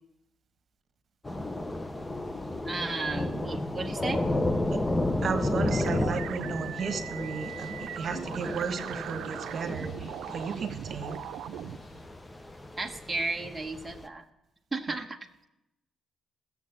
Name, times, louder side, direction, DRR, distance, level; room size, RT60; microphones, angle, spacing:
Thunder / Rain, 1.2-14.1, left 1 dB, 15° left, 0.7 m, -33 dB
voice 1, 2.6-4.2 12.8-14.3 14.7-15.2, right 3 dB, 15° right, 2 dB, 1.0 m, -33 dB
voice 2, 5.2-11.2, right 6 dB, 50° right, 8 dB, 1.3 m, -34 dB
sound 1, 5.7-11.8, right 11 dB, 85° right, 0.5 m, -40 dB
Purr, 7.2-12.1, left 1 dB, 35° left, 3.8 m, -54 dB
14.5 x 7.5 x 7.1 m, 0.86 s
cardioid pair, 90°, 0 cm